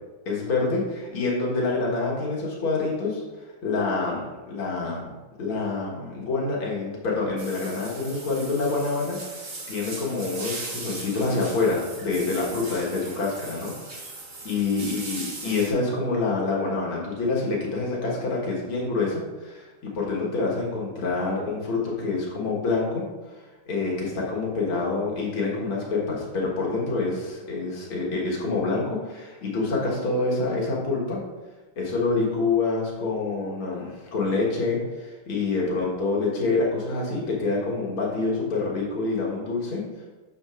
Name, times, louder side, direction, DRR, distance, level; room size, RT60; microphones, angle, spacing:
voice 1, 0.3-5.1 5.4-14.0 14.4-31.2 31.8-40.1, left 3 dB, 80° left, -4 dB, 2.4 m, -27 dB
sound 1, 7.4-15.7, right 2 dB, 35° right, 1.1 m, -38 dB
10.0 x 6.7 x 2.5 m, 1.2 s
omnidirectional pair, 2.3 m